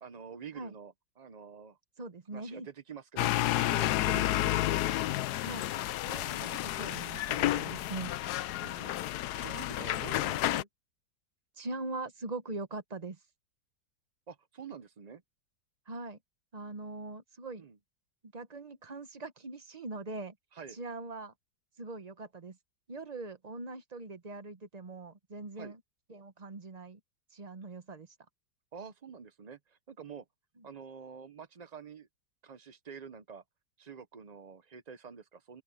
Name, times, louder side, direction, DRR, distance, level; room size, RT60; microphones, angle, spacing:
voice 1, 0.0-1.8 2.3-3.3 3.6-4.6 6.5-6.6 7.0-7.1 8.6-10.7 14.3-15.2 17.6-17.8 20.5-20.8 25.6-25.7 28.7-30.2 30.6-32.1 32.4-33.4 33.8-35.6, right 6 dB, 70° right, 0.4 m, -47 dB
voice 2, 2.0-2.7 4.1-4.3 5.4-5.7 6.0-8.1 11.6-13.2 15.9-16.2 16.5-17.7 18.2-20.4 20.7-21.3 21.8-22.6 22.9-25.8 26.1-27.0 27.3-28.1 30.6-30.7, right 2 dB, 30° right, 0.8 m, -42 dB
sound 1, 3.2-10.6, left 14 dB, 70° left, 1.0 m, -31 dB
open air
omnidirectional pair, 2.0 m